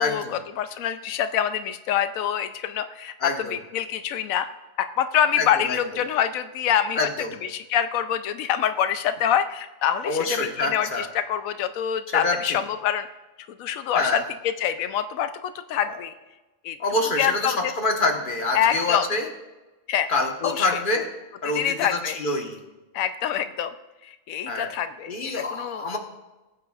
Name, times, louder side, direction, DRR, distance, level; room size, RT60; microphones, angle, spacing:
voice 1, 0.0-0.4 3.2-3.6 5.4-5.8 7.0-7.3 10.0-11.1 12.1-12.6 13.9-14.2 16.8-19.3 20.1-21.0 21.4-22.6 24.5-24.7 25.1-26.0, left 2 dB, 40° left, 3 dB, 1.4 m, -26 dB
voice 2, 0.6-4.5 4.8-7.1 7.4-13.1 13.5-16.1 16.6-16.8 17.2-17.7 18.5-19.0 19.9-20.1 20.4-20.8 21.5-22.2 22.9-23.7 24.0-25.8, left 9 dB, 90° left, 10 dB, 1.0 m, -26 dB
19.5 x 8.8 x 2.4 m, 1.1 s
omnidirectional pair, 1.4 m